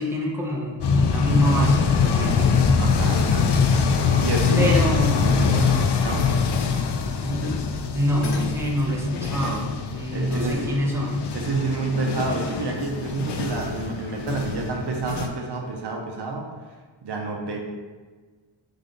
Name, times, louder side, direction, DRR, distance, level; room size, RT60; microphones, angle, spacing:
voice 1, 0.0-2.6 4.6-5.3 7.1-7.6 7.9-11.3, equal, 5° right, -3 dB, 0.7 m, -25 dB
sound 1, 0.8-15.3, left 5 dB, 65° left, 0.5 m, -23 dB
voice 2, 2.8-4.8 5.3-6.3 10.1-10.8 11.3-16.5 17.0-17.6, right 3 dB, 60° right, 1 dB, 0.7 m, -29 dB
3.7 x 3.3 x 3.7 m, 1.4 s
wide cardioid pair, 100°, 45 cm